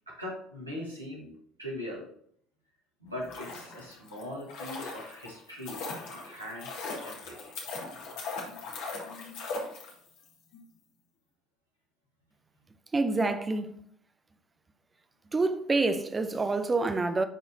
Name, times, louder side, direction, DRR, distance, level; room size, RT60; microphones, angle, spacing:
voice 1, 0.1-2.1 3.0-7.5, left 1 dB, 90° right, 1.8 m, -41 dB
sound 1, 3.1-10.3 10.5-10.6, left 3 dB, 60° left, 1.6 m, -39 dB
voice 2, 12.9-13.8 15.3-17.2, right 3 dB, 25° right, 0.7 m, -27 dB
10.5 x 4.0 x 2.8 m
figure-of-eight pair, 60°, 0 cm